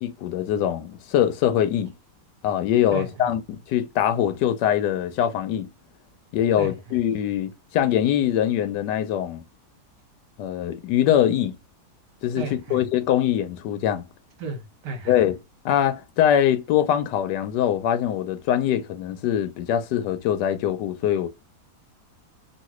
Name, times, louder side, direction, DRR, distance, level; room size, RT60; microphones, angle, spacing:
voice 1, 0.0-1.9 2.4-5.7 6.3-9.4 10.4-11.5 12.2-12.4 12.7-14.0 15.1-15.4 15.6-21.3, left 10 dB, 85° left, 1.2 m, -23 dB
voice 2, 2.9-3.3 6.6-7.0 12.3-12.8 14.4-15.2, right 3 dB, 75° right, 1.5 m, -34 dB
3.1 x 2.6 x 3.0 m
omnidirectional pair, 1.8 m